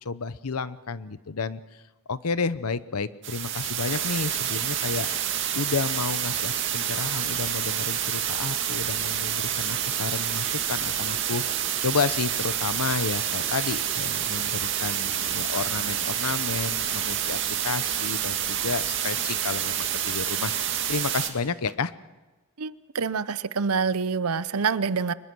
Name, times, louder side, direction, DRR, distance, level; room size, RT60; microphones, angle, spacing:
voice 1, 0.0-1.6 2.1-5.3 5.5-11.4 11.8-17.4 17.6-20.5 20.9-21.9, left 4 dB, 85° left, 15 dB, 0.8 m, -31 dB
sound 1, 3.2-21.3, right 10 dB, 55° right, 2.2 m, -28 dB
sound 2, 6.2-21.1, equal, 5° right, 4.8 m, -52 dB
voice 2, 22.6-25.1, right 5 dB, 85° right, 16 dB, 0.7 m, -26 dB
24.0 x 21.0 x 6.2 m, 1.2 s
head